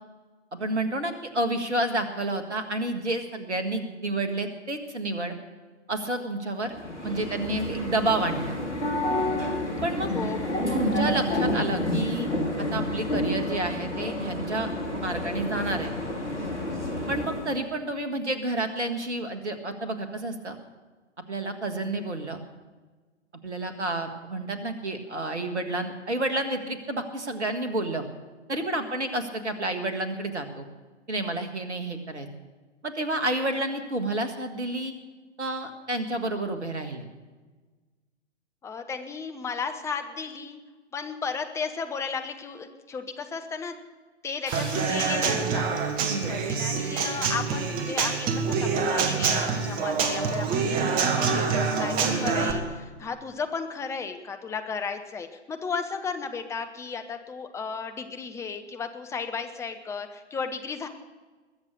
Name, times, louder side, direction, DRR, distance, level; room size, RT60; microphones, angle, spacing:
voice 1, 0.5-5.3 5.9-6.7 7.0-8.6 9.8-10.1 10.7-12.3 12.6-14.7 15.0-15.9 17.1-20.6 21.3-22.4 23.4-28.0 28.5-30.7 31.1-32.3 32.8-34.9 35.4-37.1 46.0-46.5, right 2 dB, 75° right, 8 dB, 1.7 m, -30 dB
sound 1, 6.7-17.6, left 1 dB, 80° left, 2.7 m, -29 dB
voice 2, 10.1-10.5 38.6-40.6 40.9-43.7 44.2-45.7 46.3-60.9, left 5 dB, 10° left, 7 dB, 0.7 m, -34 dB
Human voice / Acoustic guitar / Drum, 44.5-52.5, right 5 dB, 25° right, 1.4 m, -26 dB
sound 2, 44.5-47.4, right 1 dB, 40° right, 5.8 m, -45 dB
21.0 x 7.3 x 6.5 m, 1.3 s
figure-of-eight pair, 115°, 34 cm